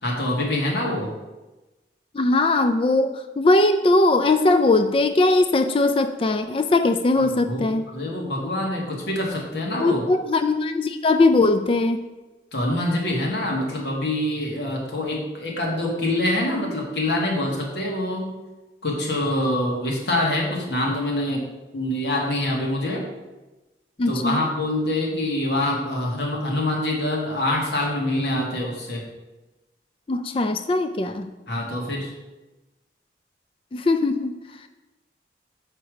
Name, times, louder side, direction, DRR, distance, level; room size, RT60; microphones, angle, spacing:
voice 1, 0.0-1.1 7.2-10.0 12.5-18.3 18.8-21.5 21.7-23.1 24.1-29.0 31.5-32.1, left 1 dB, 75° left, -1 dB, 1.8 m, -25 dB
voice 2, 2.1-7.9 9.8-12.0 24.0-24.5 30.1-31.3 33.7-34.4, left 2 dB, 30° left, 8 dB, 0.3 m, -20 dB
5.8 x 4.8 x 6.3 m, 1.1 s
head